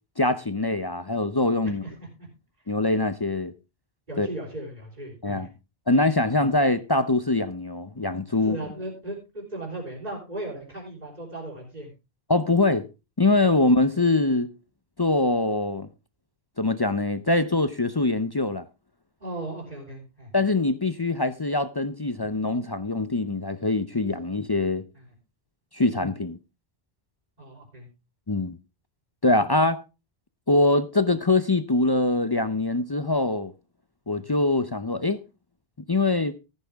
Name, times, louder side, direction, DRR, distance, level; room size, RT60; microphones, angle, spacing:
voice 1, 0.2-1.8 2.7-3.5 4.2-4.3 5.2-5.5 5.9-8.6 12.3-12.9 13.2-14.5 15.0-15.9 16.6-18.6 20.3-24.8 25.7-26.4 28.3-28.6 29.2-29.8 30.5-33.5 34.1-35.2 35.9-36.4, left 2 dB, 30° left, 0.5 m, -23 dB
voice 2, 1.8-2.3 4.1-5.5 8.4-11.9 19.2-20.3 24.9-25.0 27.4-27.9 34.2-34.3, right 2 dB, 45° right, 4.1 m, -37 dB
14.0 x 9.8 x 3.5 m
omnidirectional pair, 1.0 m